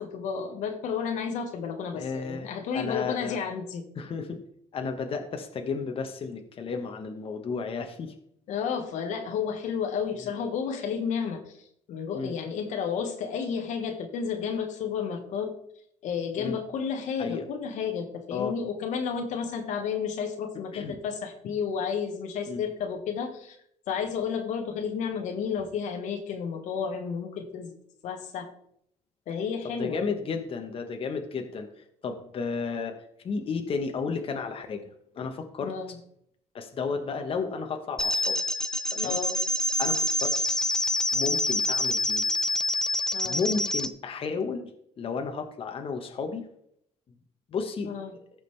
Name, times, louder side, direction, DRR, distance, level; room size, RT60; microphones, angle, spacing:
voice 1, 0.0-3.8 8.5-15.6 16.0-23.6 23.9-27.7 28.0-28.5 29.3-30.0 35.6-36.0 39.0-39.4 43.1-43.4 47.8-48.2, left 6 dB, 75° left, 5 dB, 1.4 m, -32 dB
voice 2, 1.9-2.5 2.7-3.4 4.0-4.4 4.7-8.1 10.2-10.3 12.1-12.3 16.4-16.6 17.2-17.4 18.3-18.5 20.7-21.0 22.5-22.6 29.8-33.0 33.2-34.9 35.1-35.7 36.5-38.4 38.9-39.1 39.8-40.3 41.1-42.2 43.2-44.7 45.0-46.4 47.5-47.9, left 5 dB, 50° left, 4 dB, 1.2 m, -33 dB
sound 1, 38.0-43.9, left 1 dB, 5° left, 0.5 m, -27 dB
14.5 x 5.1 x 3.3 m, 0.69 s
cardioid pair, 100°, 13 cm